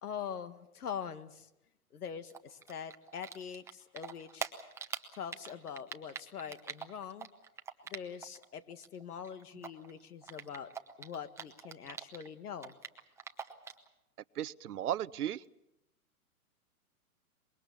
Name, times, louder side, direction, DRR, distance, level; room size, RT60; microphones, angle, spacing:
voice 1, 0.0-1.5 1.9-4.5 5.1-7.3 7.9-10.7 11.0-12.7, left 7 dB, 75° left, 13 dB, 1.8 m, -43 dB
Typing, 2.3-3.7 4.0-8.4 8.7-12.3 12.6-13.9, right 6 dB, 5° right, 0.9 m, -43 dB
voice 2, 14.3-15.4, right 11 dB, 80° right, 20 dB, 0.8 m, -35 dB
24.5 x 22.0 x 7.1 m, 0.89 s
hypercardioid pair, 140°, 45 cm